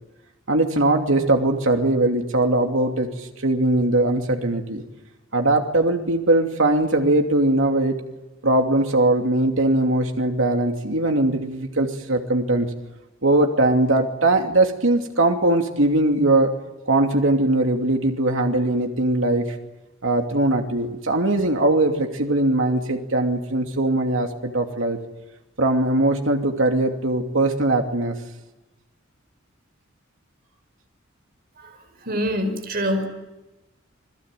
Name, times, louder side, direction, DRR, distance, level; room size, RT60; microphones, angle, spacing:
voice 1, 0.5-4.8 5.3-8.0 8.4-12.7 13.2-16.5 16.9-19.6 20.0-25.0 25.6-28.2, right 2 dB, 80° right, 3 dB, 2.7 m, -20 dB
voice 2, 32.1-33.1, equal, 50° right, 6 dB, 5.1 m, -24 dB
29.5 x 22.0 x 9.1 m, 1.1 s
head